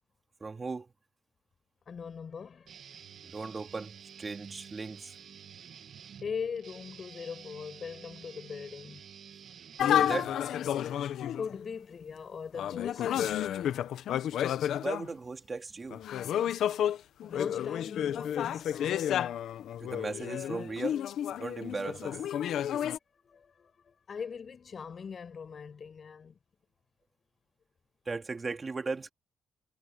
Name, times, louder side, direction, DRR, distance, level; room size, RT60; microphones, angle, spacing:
voice 1, 0.4-0.9 3.2-5.1 9.8-10.4 14.8-16.0 19.8-21.0 21.4-22.2 28.0-29.1, right 4 dB, 30° right, 3.3 m, -37 dB
voice 2, 1.9-2.7 6.2-9.0 11.3-13.2 17.2-19.0 23.2-26.4, left 6 dB, 45° left, 5.8 m, -40 dB
Guitar, 2.7-10.7, right 8 dB, 60° right, 2.7 m, -50 dB
sound 1, 9.8-11.6 12.5-15.1 15.9-23.0, left 10 dB, 75° left, 1.3 m, -31 dB
cardioid pair, 90°, 0 cm